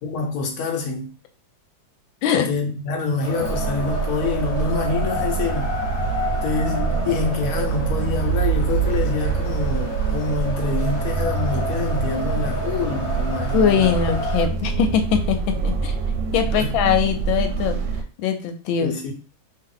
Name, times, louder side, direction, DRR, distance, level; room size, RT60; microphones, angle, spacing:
voice 1, 0.0-1.1 2.3-5.8 6.4-13.9 16.4-16.7 18.8-19.1, left 4 dB, 60° left, 1.1 m, -26 dB
Wind, 3.2-14.4, left 1 dB, 35° left, 0.6 m, -31 dB
sound 1, 3.4-18.0, right 5 dB, 75° right, 1.2 m, -25 dB
voice 2, 13.5-16.0 16.3-17.8 18.2-18.9, left 8 dB, 85° left, 1.4 m, -21 dB
3.0 x 2.8 x 3.8 m
omnidirectional pair, 2.1 m